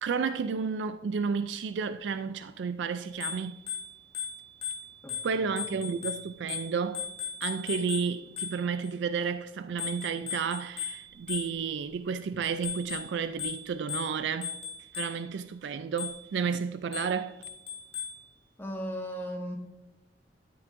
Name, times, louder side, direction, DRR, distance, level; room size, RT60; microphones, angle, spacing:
voice 1, 0.0-3.7 5.2-7.1 7.4-14.5 15.0-17.4, right 6 dB, 80° right, 0.4 m, -32 dB
Bicycle bell, 3.1-8.9 9.8-11.9 12.4-15.4 16.0-16.4 16.9-18.3, left 7 dB, 30° left, 1.6 m, -38 dB
voice 2, 18.6-19.5, equal, 15° left, 1.5 m, -36 dB
13.0 x 6.1 x 2.6 m
head